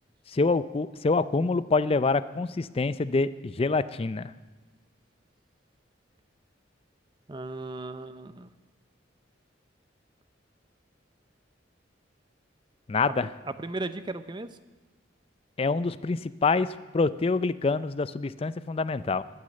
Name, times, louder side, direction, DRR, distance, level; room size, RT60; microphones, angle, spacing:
voice 1, 0.3-4.3 12.9-13.3 15.6-16.7 16.9-19.2, left 3 dB, 30° left, 15 dB, 0.4 m, -26 dB
voice 2, 7.3-8.5 13.5-14.5, right 2 dB, 25° right, 12 dB, 0.6 m, -36 dB
12.0 x 9.5 x 8.7 m, 1.3 s
head